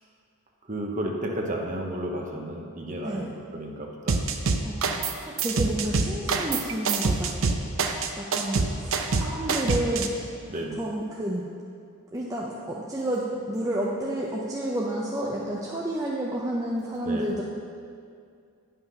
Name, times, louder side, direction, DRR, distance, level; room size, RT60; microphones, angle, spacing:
voice 1, 0.7-4.3 10.5-10.8 17.0-17.4, right 1 dB, 35° right, 0 dB, 1.0 m, -32 dB
sound 1, 4.1-5.1 5.4-10.1, right 4 dB, 65° right, 0.6 m, -25 dB
voice 2, 4.6-7.6 8.2-10.2 10.8-11.4 12.1-17.4, right 1 dB, 15° right, -4 dB, 0.6 m, -30 dB
9.8 x 5.6 x 5.8 m, 2.3 s
head